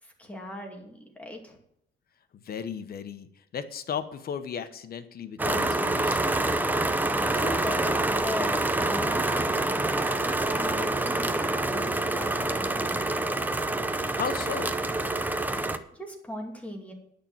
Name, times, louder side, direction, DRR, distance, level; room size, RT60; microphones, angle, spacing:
voice 1, 0.0-1.6 7.3-8.5 8.9-9.8 10.2-13.4 15.4-16.9, left 1 dB, 5° left, 1 dB, 2.4 m, -39 dB
voice 2, 2.4-3.3 3.5-6.4 14.1-14.8, left 7 dB, 55° left, 10 dB, 1.0 m, -35 dB
sound 1, 5.4-15.8, right 2 dB, 10° right, 0.6 m, -26 dB
10.0 x 6.7 x 7.8 m, 0.72 s
cardioid pair, 150°, 19 cm